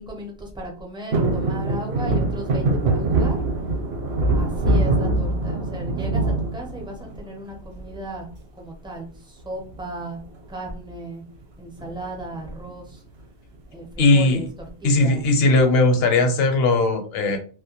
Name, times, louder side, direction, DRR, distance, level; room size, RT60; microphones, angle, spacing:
voice 1, 0.0-3.4 4.2-8.3 8.6-10.2 10.5-11.2 11.6-13.0 13.7-14.5 14.8-15.2, right 1 dB, 5° right, -1 dB, 0.3 m, -35 dB
sound 1, 1.1-7.3 7.7-8.3 9.6-10.0 10.3-10.4 10.6-11.0 11.8-12.7 13.2-13.3, right 2 dB, 70° right, 0.8 m, -23 dB
voice 2, 14.0-14.4 14.8-17.4, left 2 dB, 65° left, 5 dB, 0.8 m, -18 dB
2.2 x 2.1 x 2.8 m, 0.39 s
omnidirectional pair, 1.1 m